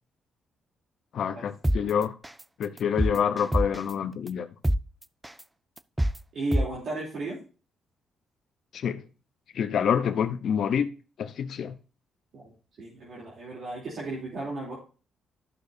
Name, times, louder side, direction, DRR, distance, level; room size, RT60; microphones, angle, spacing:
voice 1, 1.1-2.1 2.6-4.5 8.7-9.0 9.5-10.9 11.2-11.7, left 8 dB, 65° left, 0.8 m, -27 dB
sound 1, 1.6-1.8 2.2-2.4 2.8-3.9 4.3-4.4 4.6-4.8 5.2-5.4 5.8-6.2 6.5-6.7, right 1 dB, 10° right, 0.4 m, -24 dB
voice 2, 6.3-7.4 12.3-12.5 12.8-14.7, right 2 dB, 65° right, 3.3 m, -34 dB
12.5 x 6.6 x 2.7 m
cardioid pair, 90°, 0 cm